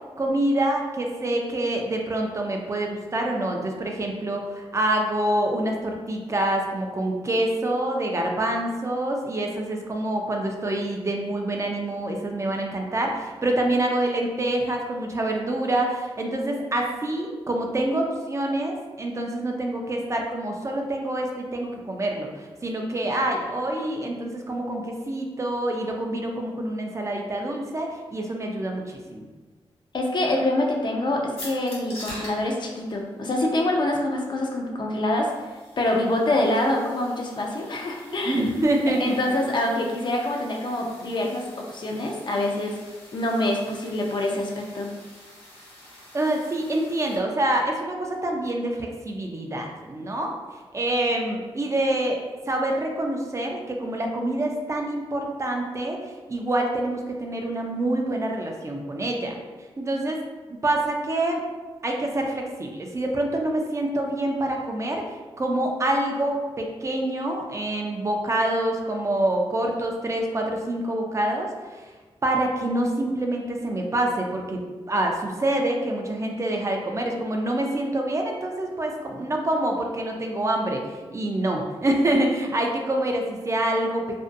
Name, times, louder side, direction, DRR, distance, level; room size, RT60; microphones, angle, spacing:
voice 1, 0.2-29.3 38.2-39.2 46.1-50.3 50.7-52.2 52.5-59.4 59.8-60.2 60.5-61.4 61.8-65.0 65.4-71.8 72.2-74.6 74.9-84.0, right 1 dB, 30° right, 1 dB, 0.4 m, -26 dB
voice 2, 29.9-35.3 35.8-38.7 39.0-44.9, left 1 dB, 50° left, 0 dB, 0.5 m, -25 dB
sound 1, 31.4-47.2, left 1 dB, 80° left, 0.9 m, -46 dB
2.5 x 2.1 x 2.5 m, 1.3 s
cardioid pair, 70°, 10 cm